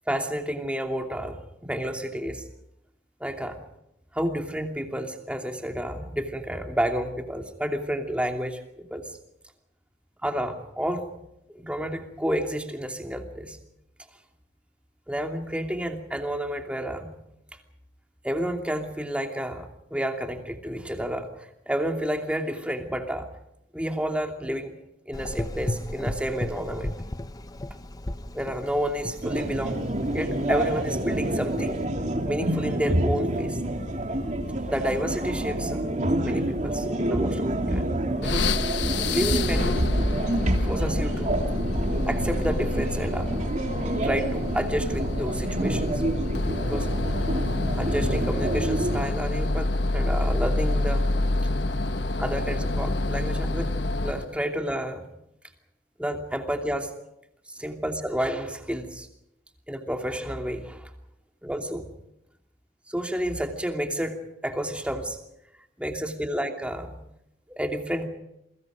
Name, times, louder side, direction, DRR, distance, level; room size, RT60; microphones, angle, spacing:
voice 1, 0.1-2.4 3.2-3.6 4.1-9.1 10.2-11.1 11.5-13.6 15.1-17.2 18.2-23.3 23.7-24.8 25.1-26.9 28.3-29.8 30.1-31.8 32.2-33.6 34.7-35.8 36.2-37.9 38.2-38.5 39.1-39.8 40.4-41.4 42.1-43.3 44.0-46.0 46.6-46.9 47.8-51.1 52.2-53.7 54.0-55.1 56.0-56.9 57.5-59.1 59.7-60.9 61.4-61.9 62.9-65.2 65.8-67.0 67.5-68.1, equal, 5° right, 4 dB, 2.8 m, -30 dB
Gurgling / Engine, 25.1-31.8, left 1 dB, 20° left, 0.8 m, -36 dB
sound 1, 29.2-49.0, right 1 dB, 45° right, 3.0 m, -27 dB
sound 2, 38.2-54.4, left 2 dB, 75° left, 1.2 m, -28 dB
28.5 x 23.0 x 5.1 m, 0.80 s
head